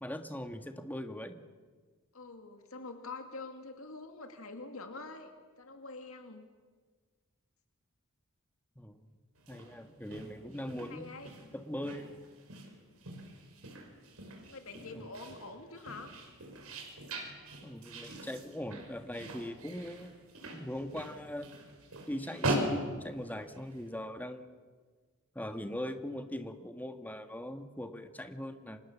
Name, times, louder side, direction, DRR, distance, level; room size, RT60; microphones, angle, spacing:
voice 1, 0.0-1.4 8.7-9.0 9.5-11.1 11.5-12.1 14.9-15.1 17.6-20.2 20.5-21.5 22.1-24.6 25.3-28.8, left 1 dB, 10° left, 7 dB, 1.6 m, -41 dB
voice 2, 2.1-5.3 5.6-6.4 10.9-11.3 14.5-16.1, left 3 dB, 70° left, 6 dB, 2.4 m, -45 dB
sound 1, 9.4-23.8, right 1 dB, 80° right, 5.5 m, -41 dB
30.0 x 25.5 x 7.3 m, 1.5 s
head